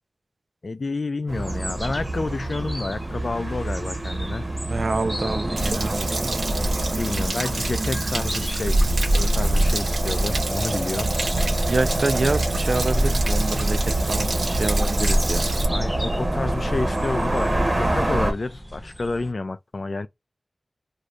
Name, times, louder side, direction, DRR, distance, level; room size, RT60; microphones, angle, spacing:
voice 1, 0.6-4.5 7.0-8.8 9.1-11.1 15.7-20.1, left 3 dB, 60° left, 0.4 m, -29 dB
sound 1, 1.3-19.3, equal, 5° right, 0.8 m, -39 dB
sound 2, 1.3-18.3, right 1 dB, 40° right, 0.9 m, -24 dB
voice 2, 4.7-6.1 11.7-15.4, right 3 dB, 65° right, 0.5 m, -27 dB
Stream / Splash splatter / Trickle dribble, 5.6-15.6, right 2 dB, 90° right, 0.8 m, -30 dB
2.7 x 2.4 x 3.1 m
wide cardioid pair, 80°, 0 cm